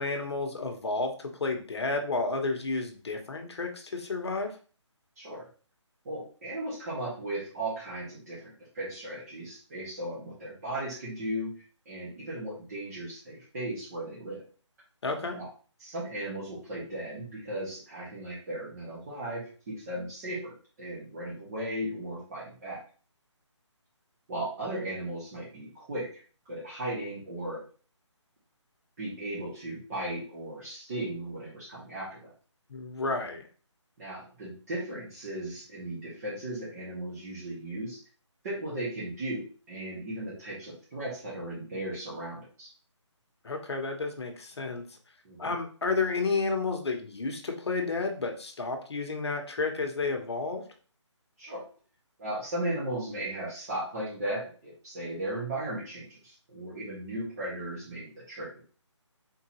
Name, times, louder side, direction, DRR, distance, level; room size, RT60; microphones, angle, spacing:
voice 1, 0.0-4.6 15.0-15.4 32.7-33.4 43.4-44.8 45.4-50.6, left 3 dB, 60° left, 4 dB, 1.2 m, -31 dB
voice 2, 6.1-11.5 11.9-14.4 15.3-15.5 15.8-20.5 20.8-22.8 24.3-26.1 26.5-27.6 29.0-32.3 34.0-38.0 38.4-42.7 45.2-45.5 51.4-51.6 52.2-58.6, right 1 dB, 30° right, -8 dB, 1.8 m, -36 dB
4.5 x 3.8 x 3.1 m, 0.38 s
figure-of-eight pair, 155°, 16 cm